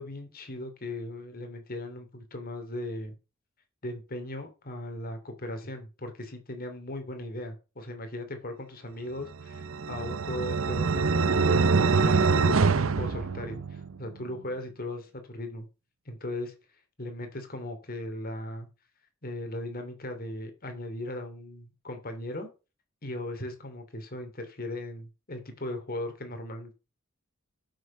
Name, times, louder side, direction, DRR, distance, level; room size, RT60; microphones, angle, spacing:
voice 1, 0.0-3.1 3.8-15.7 16.1-16.5 17.0-18.7 19.2-22.5 23.0-26.7, left 1 dB, 45° left, 2.7 m, -38 dB
sound 1, 9.4-14.0, right 4 dB, 70° right, 0.6 m, -24 dB
9.7 x 6.7 x 6.0 m
head